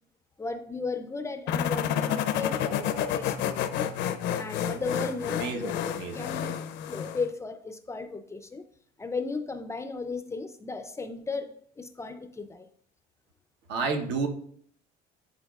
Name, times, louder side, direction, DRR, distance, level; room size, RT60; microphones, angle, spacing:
voice 1, 0.4-3.9 4.4-6.6 6.9-8.6 9.0-12.7, left 4 dB, 15° left, 0.4 m, -35 dB
sound 1, 1.5-7.3, left 9 dB, 75° left, 0.5 m, -30 dB
voice 2, 5.4-6.6 13.7-14.3, right 4 dB, 75° right, 1.0 m, -31 dB
10.5 x 4.0 x 2.3 m
cardioid pair, 130°, 19 cm